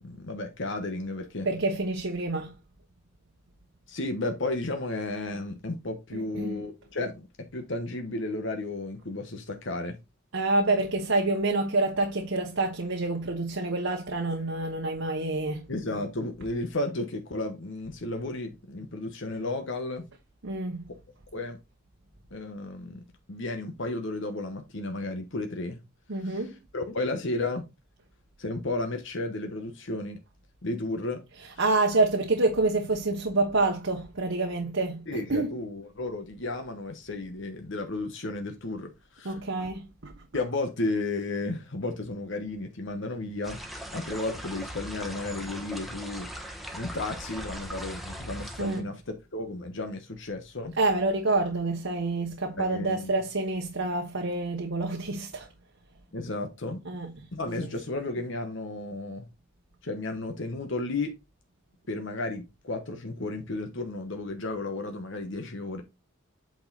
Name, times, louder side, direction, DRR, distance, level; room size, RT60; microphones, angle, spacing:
voice 1, 0.0-1.5 3.9-7.3 7.5-10.0 15.7-20.1 21.3-21.6 22.3-23.0 23.3-25.8 26.2-26.5 26.7-27.6 28.4-30.2 30.6-31.2 35.1-39.3 40.3-43.6 43.9-46.3 46.7-49.0 49.3-50.8 52.6-53.1 56.1-56.8 57.3-59.3 59.8-61.1 61.9-65.8, left 2 dB, 60° left, 1.1 m, -33 dB
voice 2, 1.4-2.6 6.1-6.6 10.3-15.7 20.4-20.8 26.1-26.6 31.6-35.6 39.2-40.1 48.6-48.8 50.8-55.5 56.9-57.1, right 2 dB, 65° right, 1.1 m, -27 dB
sound 1, 43.4-48.8, equal, ahead, 1.1 m, -39 dB
8.5 x 4.4 x 4.0 m
head